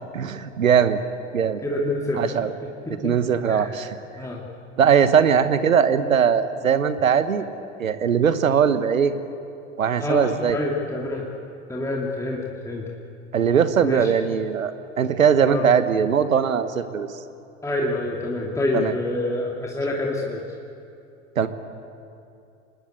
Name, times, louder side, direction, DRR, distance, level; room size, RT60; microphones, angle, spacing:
voice 1, 0.1-1.0 1.3-1.6 2.2-2.5 2.9-4.0 4.8-7.4 7.8-9.1 9.8-10.6 13.3-17.1 18.7-18.9 21.3-21.5, right 7 dB, 80° right, 12 dB, 1.4 m, -20 dB
voice 2, 1.6-2.2 2.9-3.1 3.5-3.7 4.2-4.4 10.0-11.3 11.7-12.8 13.8-14.1 15.4-15.6 17.6-20.6, left 2 dB, 10° left, -3 dB, 2.8 m, -27 dB
26.0 x 20.0 x 8.3 m, 2.6 s
figure-of-eight pair, 85°, 40 cm